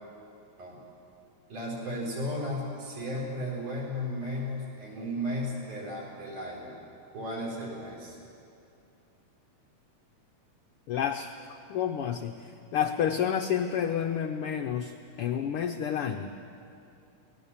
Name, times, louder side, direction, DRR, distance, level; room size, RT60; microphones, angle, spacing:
voice 1, 1.5-6.8 7.1-8.2, equal, 80° right, -4 dB, 6.4 m, -34 dB
voice 2, 10.9-16.3, left 8 dB, 90° left, 5 dB, 1.2 m, -30 dB
22.0 x 19.0 x 7.2 m, 2.7 s
omnidirectional pair, 3.5 m